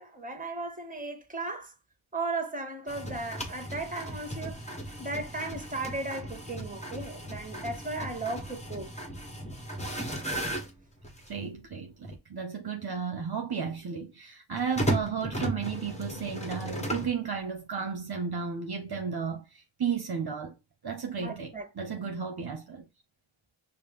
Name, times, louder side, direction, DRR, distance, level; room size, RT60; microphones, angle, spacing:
voice 1, 0.0-1.7 2.1-4.7 5.0-8.9 21.2-22.2, right 3 dB, 15° right, 1.3 m, -36 dB
sound 1, 2.9-11.4 12.0-12.2 14.5-17.2, equal, 15° left, 1.2 m, -36 dB
voice 2, 11.3-20.5 20.8-22.8, right 6 dB, 55° right, 0.8 m, -34 dB
4.8 x 2.1 x 3.4 m
cardioid pair, 45°, 47 cm